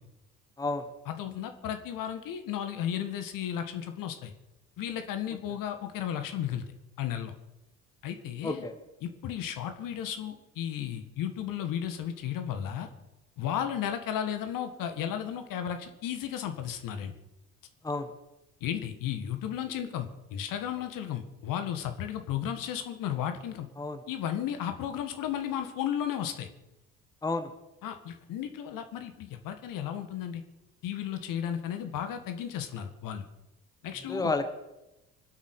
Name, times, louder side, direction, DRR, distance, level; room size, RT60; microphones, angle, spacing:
voice 1, 1.1-4.3 4.8-6.6 7.0-7.3 8.0-8.7 9.0-12.9 13.4-17.1 18.6-23.7 24.1-26.5 27.8-30.4 30.8-33.2 33.8-34.3, left 9 dB, 50° left, 8 dB, 1.8 m, -34 dB
voice 2, 34.1-34.5, left 3 dB, 10° left, 8 dB, 1.3 m, -30 dB
24.5 x 8.3 x 6.6 m, 0.97 s
figure-of-eight pair, 60°, 43 cm